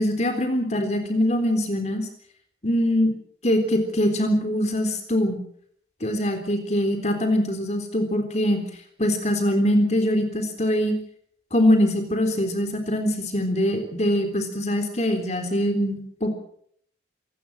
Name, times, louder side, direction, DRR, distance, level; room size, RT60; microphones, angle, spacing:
voice 1, 0.0-2.1 2.6-3.1 3.4-5.4 6.0-8.6 9.0-10.9 11.5-16.3, left 1 dB, 40° left, 6 dB, 3.7 m, -23 dB
26.5 x 18.0 x 7.4 m, 0.66 s
head